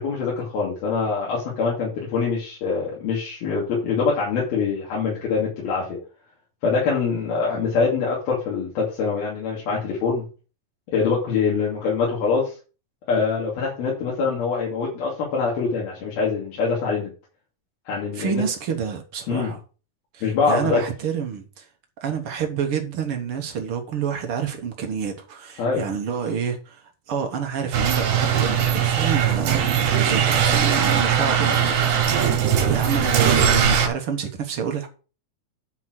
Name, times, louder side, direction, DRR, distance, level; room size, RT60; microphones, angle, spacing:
voice 1, 0.0-6.0 6.6-10.2 10.9-12.5 13.1-17.1 17.9-18.4 19.3-19.5 20.2-20.8 25.6-25.9, left 5 dB, 80° left, 4.5 m, -24 dB
voice 2, 18.1-19.6 20.1-21.7 22.0-26.8 27.1-32.1 32.7-34.9, right 7 dB, 55° right, 1.6 m, -28 dB
sound 1, 27.7-33.9, right 8 dB, 80° right, 3.4 m, -20 dB
9.5 x 4.8 x 6.2 m
omnidirectional pair, 4.3 m